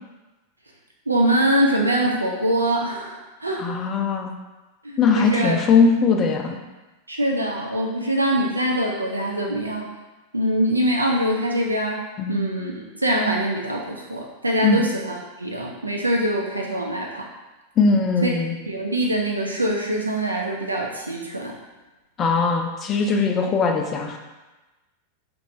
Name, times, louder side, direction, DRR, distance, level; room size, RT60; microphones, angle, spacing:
voice 1, 1.1-3.7 4.8-5.6 7.1-9.9 10.3-17.3 18.2-18.3 18.7-21.6, right 1 dB, 80° right, -1 dB, 0.4 m, -23 dB
voice 2, 3.6-4.3 5.0-6.6 12.2-12.4 14.6-14.8 17.8-18.5 22.2-24.2, left 4 dB, 30° left, 3 dB, 0.4 m, -20 dB
3.2 x 2.9 x 2.5 m, 1.1 s
figure-of-eight pair, 90°, 0 cm